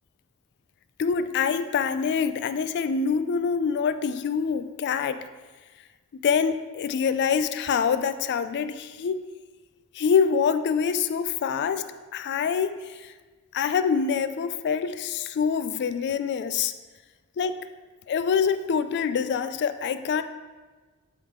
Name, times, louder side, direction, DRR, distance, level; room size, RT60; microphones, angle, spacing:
voice 1, 1.0-5.3 6.1-9.2 9.9-11.8 12.1-13.1 13.5-16.7 17.4-17.5 18.1-20.2, left 6 dB, 50° left, 11 dB, 0.3 m, -25 dB
11.0 x 3.7 x 3.6 m, 1.3 s
head